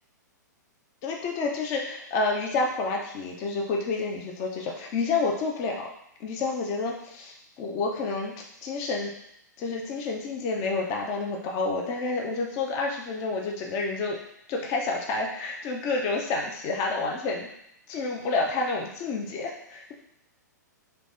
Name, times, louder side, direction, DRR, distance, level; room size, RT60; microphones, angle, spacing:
voice 1, 1.0-5.9 6.2-8.3 8.6-9.1 9.6-14.2 14.5-17.5 17.9-19.9, left 3 dB, 30° left, 0 dB, 0.7 m, -29 dB
3.3 x 3.2 x 4.0 m, 0.78 s
figure-of-eight pair, 110°, 10 cm